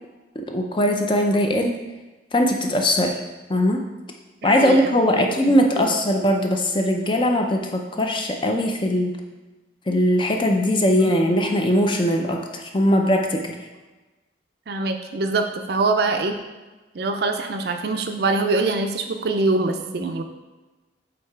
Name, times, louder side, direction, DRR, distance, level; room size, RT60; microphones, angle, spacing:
voice 1, 0.4-1.8 2.3-3.2 3.5-3.9 4.4-9.2 9.9-13.6, equal, 25° left, 3 dB, 0.5 m, -20 dB
voice 2, 4.4-5.5 5.8-5.9 11.0-11.4 14.7-16.4 16.9-20.2, right 3 dB, 55° right, 6 dB, 0.5 m, -24 dB
7.5 x 2.9 x 4.6 m, 1.2 s
head